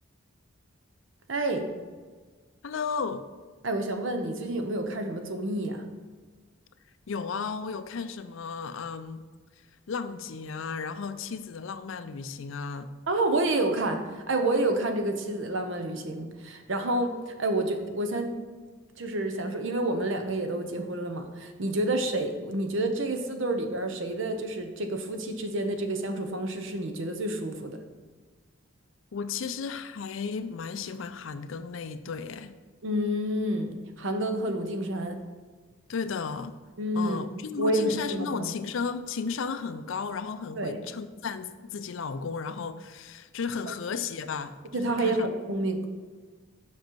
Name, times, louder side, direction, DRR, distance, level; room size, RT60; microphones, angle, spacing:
voice 1, 1.3-1.7 3.6-5.9 13.1-18.3 19.0-27.8 32.8-35.2 36.8-37.2 37.6-38.6 40.5-40.8 43.7-43.8 44.7-45.9, right 1 dB, 65° right, 6 dB, 0.8 m, -29 dB
voice 2, 2.6-3.3 7.1-9.2 9.9-12.9 29.1-32.5 35.9-36.6 36.9-45.3, left 5 dB, 65° left, 11 dB, 0.4 m, -34 dB
7.5 x 5.2 x 4.6 m, 1.4 s
head